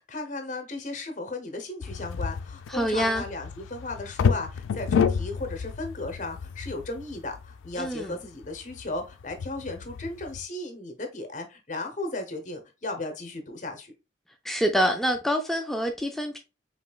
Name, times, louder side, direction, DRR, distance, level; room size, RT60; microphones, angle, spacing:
voice 1, 0.0-13.9, left 2 dB, 40° left, 0.8 m, -35 dB
sound 1, 1.8-10.4, left 6 dB, 85° left, 0.3 m, -31 dB
voice 2, 2.7-3.2 7.8-8.1 14.4-16.4, equal, ahead, 0.3 m, -26 dB
5.1 x 3.0 x 2.3 m
head